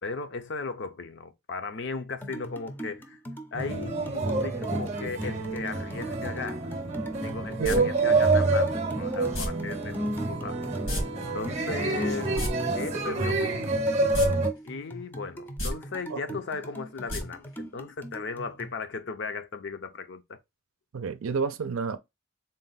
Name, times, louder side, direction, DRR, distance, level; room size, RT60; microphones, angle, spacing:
voice 1, 0.0-3.2 3.5-6.7 7.2-10.6 11.3-12.4 12.7-13.7 14.6-20.2, left 4 dB, 60° left, 0.6 m, -36 dB
sound 1, 2.2-18.7, right 1 dB, 10° left, 0.5 m, -42 dB
sound 2, 3.5-14.5, right 2 dB, 30° right, 0.7 m, -27 dB
sound 3, 7.6-7.8 9.3-9.5 10.9-11.0 11.3-11.4 12.2-12.5 14.1-14.3 14.7-14.8 15.5-15.7 17.1-17.2 17.5-17.6, equal, 85° left, 2.0 m, -29 dB
voice 2, 7.6-7.9 16.1-16.4 20.9-22.0, right 5 dB, 85° right, 0.5 m, -31 dB
3.9 x 2.2 x 4.0 m
head